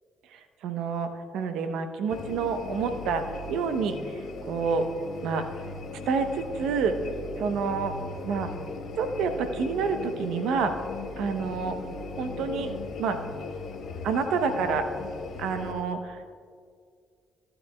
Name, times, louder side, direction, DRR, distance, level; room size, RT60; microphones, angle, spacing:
voice 1, 0.3-3.2 3.5-4.9 5.2-5.5 6.1-7.0 7.4-7.9 8.2-8.5 9.0-10.7 11.2-11.8 12.2-12.7 13.0-13.2 14.0-14.9 15.4-16.3, right 5 dB, 80° right, 8 dB, 0.8 m, -28 dB
sound 1, 2.1-15.7, left 3 dB, 65° left, 1.0 m, -38 dB
15.0 x 9.9 x 2.3 m, 2.1 s
supercardioid pair, 60°, 0 cm